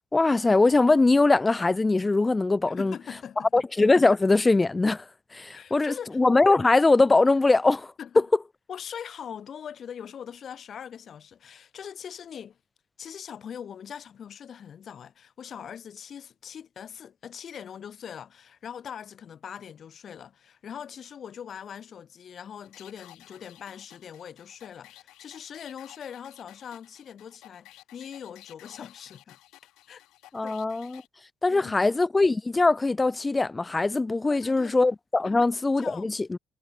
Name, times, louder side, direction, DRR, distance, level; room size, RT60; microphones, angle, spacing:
voice 1, 0.1-2.9 3.5-5.1 5.3-8.2 30.3-31.0 31.4-36.4, left 3 dB, 15° left, 2.3 m, -22 dB
voice 2, 2.7-3.7 5.5-6.2 8.0-8.3 8.7-12.6 13.0-29.4 29.9-30.0 30.4-30.5 31.5-31.9 34.3-34.8 35.2-35.5 35.8-36.1, left 8 dB, 45° left, 5.6 m, -42 dB
sound 1, 22.6-31.1, left 16 dB, 85° left, 6.9 m, -53 dB
cardioid pair, 140°, 0 cm